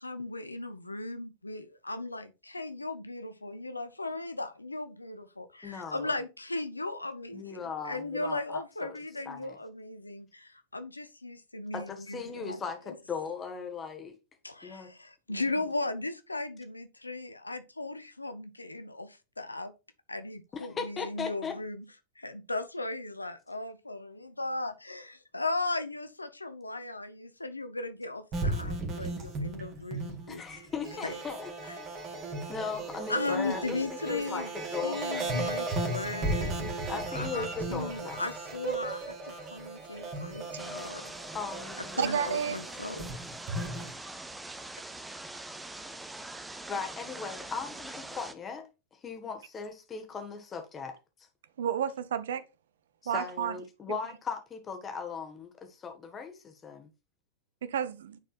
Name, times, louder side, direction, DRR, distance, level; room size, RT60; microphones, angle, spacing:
voice 1, 0.0-12.6 14.4-19.7 20.1-21.8 22.2-30.7 31.0-31.2 31.7-31.8 33.1-34.5 34.8-41.1 42.0-43.1, left 2 dB, 85° left, 0.6 m, -37 dB
voice 2, 5.6-6.1 7.3-9.0 9.2-9.6 11.7-14.1 14.6-14.9 15.3-15.4 20.5-21.6 30.3-31.5 32.5-35.3 36.9-38.3 41.3-42.3 46.7-48.7 49.0-51.0 53.0-56.9, left 5 dB, 20° left, 1.5 m, -38 dB
sound 1, 28.3-43.9, right 2 dB, 30° right, 1.9 m, -36 dB
sound 2, 40.6-48.3, right 2 dB, 5° right, 0.7 m, -43 dB
voice 3, 42.0-42.6 51.6-52.4 53.1-53.6 57.6-58.2, right 8 dB, 60° right, 0.6 m, -31 dB
9.6 x 4.3 x 2.5 m
figure-of-eight pair, 90°, 0 cm